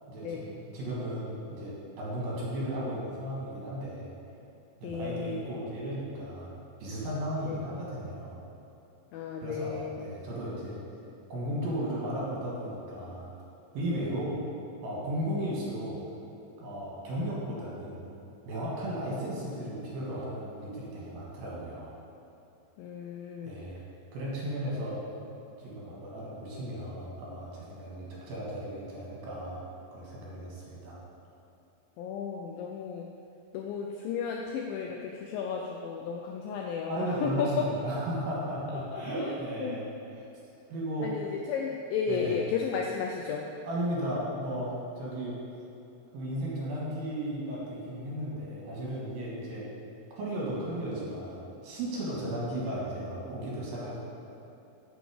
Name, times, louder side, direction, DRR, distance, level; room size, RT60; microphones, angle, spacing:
voice 1, 0.1-4.1 4.8-6.5 6.8-8.4 9.4-10.7 11.3-13.3 13.7-14.4 14.8-16.0 16.6-18.0 18.5-21.9 23.4-23.8 24.1-25.0 25.6-29.6 29.9-31.0 36.9-39.8 40.7-41.1 42.1-42.4 43.6-45.4 46.1-49.7 50.2-54.0, right 1 dB, 70° right, -5 dB, 3.1 m, -35 dB
voice 2, 4.8-5.5 7.5-7.6 9.1-10.0 22.8-23.6 32.0-33.1 33.5-37.7 38.7-39.8 41.0-43.5, left 6 dB, 85° left, 1 dB, 2.0 m, -34 dB
7.0 x 6.1 x 4.9 m, 2.8 s
omnidirectional pair, 4.5 m